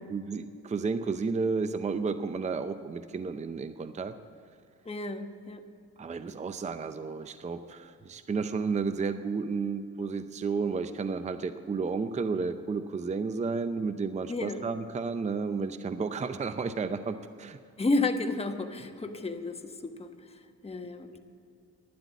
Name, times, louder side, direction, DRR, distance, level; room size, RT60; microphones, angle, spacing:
voice 1, 0.1-4.1 6.0-17.6, right 4 dB, 25° right, 11 dB, 0.6 m, -32 dB
voice 2, 4.8-5.6 14.3-14.6 17.8-21.2, left 2 dB, 20° left, 5 dB, 1.2 m, -32 dB
12.0 x 10.5 x 8.2 m, 2.6 s
cardioid pair, 90°, 30 cm